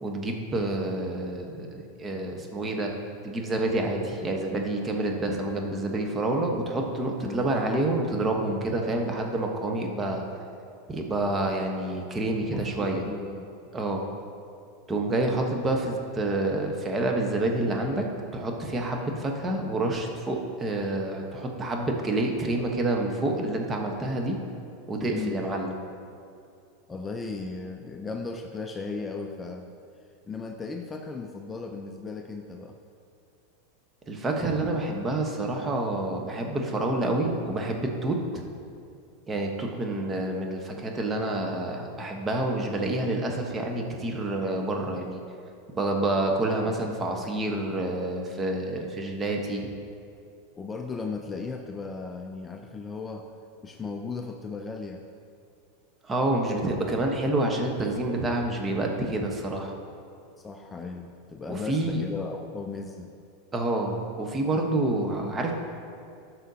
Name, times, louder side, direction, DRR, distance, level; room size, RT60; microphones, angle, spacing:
voice 1, 0.0-2.9 3.2-10.2 10.9-13.0 13.7-14.0 14.9-18.1 18.3-24.4 24.9-25.7 34.1-38.2 39.3-45.2 45.7-49.6 56.0-59.7 61.5-62.0 63.5-65.5, right 2 dB, 20° right, 1 dB, 1.1 m, -28 dB
voice 2, 12.5-13.5 25.1-25.5 26.9-29.7 30.3-32.8 46.4-46.7 50.6-53.3 53.6-55.1 60.4-63.1, left 4 dB, 20° left, 4 dB, 0.5 m, -36 dB
12.0 x 6.1 x 2.8 m, 2.5 s
hypercardioid pair, 105°, 0 cm